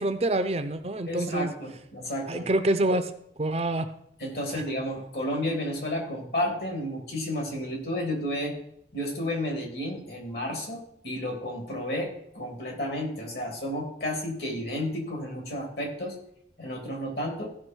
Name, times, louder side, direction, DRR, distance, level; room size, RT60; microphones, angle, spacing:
voice 1, 0.0-1.5 2.3-3.1 3.4-3.9, right 1 dB, 35° right, 9 dB, 0.6 m, -26 dB
voice 2, 1.1-2.5 4.2-8.6 8.9-16.2 16.6-17.5, left 1 dB, 65° left, 1 dB, 3.0 m, -32 dB
15.5 x 5.9 x 4.5 m, 0.73 s
head